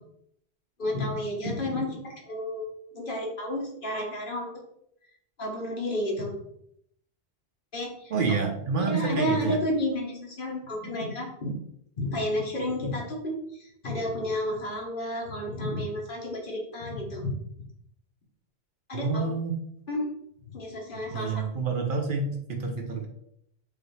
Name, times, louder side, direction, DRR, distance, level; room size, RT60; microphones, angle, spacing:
voice 1, 0.8-2.7 2.9-4.5 5.4-6.3 7.7-8.1 8.9-11.6 12.0-17.3 18.9-19.3 19.9-20.1 20.5-21.4, left 1 dB, 55° left, -2 dB, 1.2 m, -31 dB
voice 2, 8.1-9.6 18.9-19.6 21.1-23.1, right 4 dB, 60° right, 3 dB, 0.7 m, -28 dB
4.8 x 2.5 x 3.1 m, 0.73 s
omnidirectional pair, 1.1 m